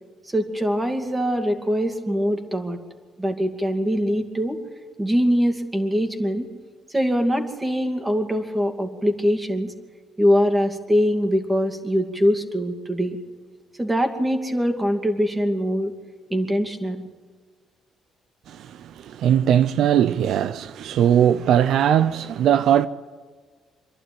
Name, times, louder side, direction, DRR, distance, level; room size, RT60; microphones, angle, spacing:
voice 1, 0.3-2.8 3.2-4.6 5.0-6.5 6.9-9.7 10.2-13.2 13.8-15.9 16.3-17.0, equal, 15° right, 2.5 m, -23 dB
voice 2, 18.5-22.9, right 10 dB, 75° right, 0.5 m, -20 dB
25.5 x 11.5 x 9.3 m
cardioid pair, 90°, 0 cm